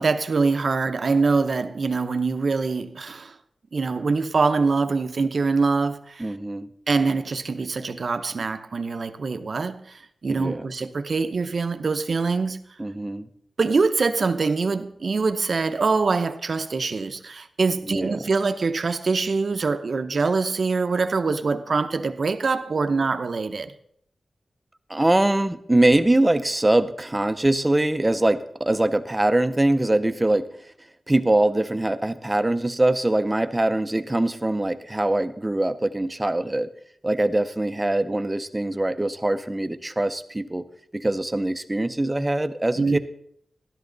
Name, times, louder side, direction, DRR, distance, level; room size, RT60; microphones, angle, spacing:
voice 1, 0.0-3.3 3.7-6.3 6.9-12.6 13.6-23.7 42.8-43.0, right 4 dB, 55° right, 0.7 m, -24 dB
voice 2, 6.2-6.7 10.3-10.7 12.8-13.3 17.9-18.2 24.9-30.5 31.1-36.7 37.0-40.6 40.9-43.0, right 1 dB, 15° right, 0.6 m, -23 dB
13.0 x 12.5 x 3.9 m
wide cardioid pair, 145°, 0 cm